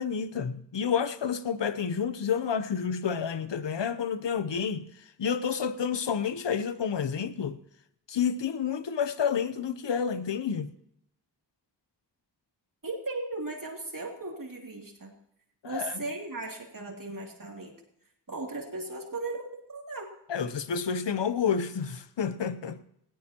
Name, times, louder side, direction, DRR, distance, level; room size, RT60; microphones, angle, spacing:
voice 1, 0.0-7.6 8.1-10.7 15.6-16.0 20.3-22.8, left 7 dB, 75° left, 0.9 m, -30 dB
voice 2, 12.8-15.1 15.6-17.7 18.3-20.1, right 2 dB, 50° right, 2.8 m, -37 dB
18.5 x 16.0 x 3.0 m
cardioid pair, 45°, 43 cm